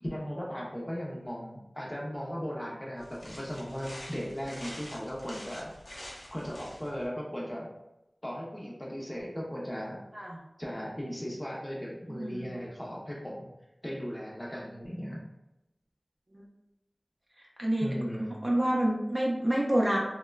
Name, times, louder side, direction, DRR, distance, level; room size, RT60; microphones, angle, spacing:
voice 1, 0.0-5.7 6.3-7.7 8.2-10.0 10.6-13.5 13.8-15.2 17.8-18.3, equal, 20° left, -4 dB, 0.6 m, -37 dB
sound 1, 3.0-7.1, left 1 dB, 75° left, 0.6 m, -46 dB
voice 2, 12.1-12.5 16.3-16.4 17.6-17.9 18.4-20.0, right 1 dB, 30° right, -2 dB, 0.5 m, -27 dB
3.0 x 2.1 x 2.2 m, 0.93 s
wide cardioid pair, 55°, 0 cm